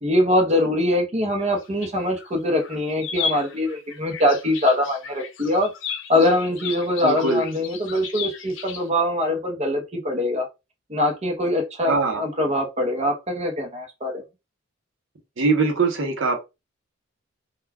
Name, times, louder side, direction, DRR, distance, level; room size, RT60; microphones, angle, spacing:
voice 1, 0.0-5.7 6.1-10.5 10.9-14.2, left 1 dB, 35° right, 0.7 m, -23 dB
sound 1, 1.4-2.3 2.6-8.9, left 6 dB, 70° left, 0.6 m, -34 dB
voice 2, 7.0-7.4 11.8-12.2 15.4-16.4, right 3 dB, 70° right, 0.7 m, -22 dB
2.3 x 2.2 x 3.3 m
head